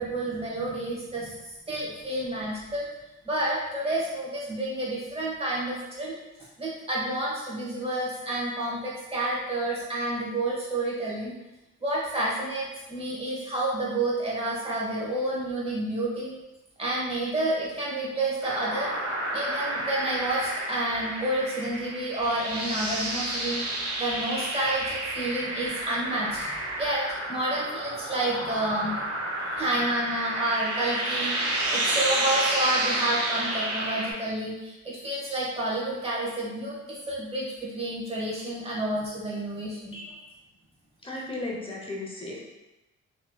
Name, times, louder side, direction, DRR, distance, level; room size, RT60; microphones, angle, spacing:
voice 1, 0.0-2.9 3.2-6.1 6.6-11.3 11.8-16.4 16.8-18.9 19.3-29.0 29.4-40.0, right 1 dB, 20° right, -5 dB, 1.1 m, -30 dB
sound 1, 18.4-34.1, right 1 dB, 50° right, 0.8 m, -30 dB
voice 2, 39.9-40.3 41.0-42.4, left 2 dB, 20° left, -3 dB, 0.7 m, -35 dB
3.0 x 3.0 x 2.2 m, 0.98 s
cardioid pair, 90°, 30 cm